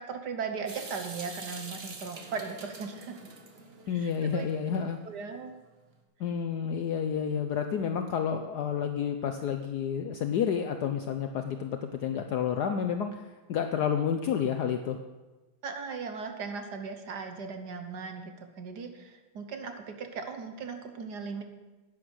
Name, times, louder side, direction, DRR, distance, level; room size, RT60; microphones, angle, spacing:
voice 1, 0.0-3.2 3.9-4.4 5.0-5.6 15.6-21.4, right 5 dB, 60° right, 6 dB, 1.4 m, -38 dB
Water tap faucet / Sink (filling or washing) / Drip, 0.7-4.8, right 3 dB, 35° right, 1.2 m, -45 dB
voice 2, 3.9-5.0 6.2-13.2 13.5-15.0, left 7 dB, 70° left, 7 dB, 1.0 m, -30 dB
10.5 x 9.0 x 6.3 m, 1.2 s
omnidirectional pair, 2.3 m